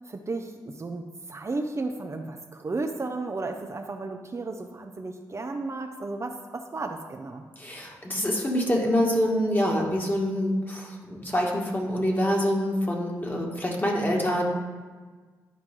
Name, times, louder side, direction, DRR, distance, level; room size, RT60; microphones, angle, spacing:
voice 1, 0.1-7.4, right 3 dB, 40° right, 4 dB, 0.7 m, -34 dB
voice 2, 7.6-14.4, equal, 25° left, -1 dB, 1.9 m, -26 dB
11.0 x 4.6 x 3.8 m, 1.4 s
supercardioid pair, 50°, 8 cm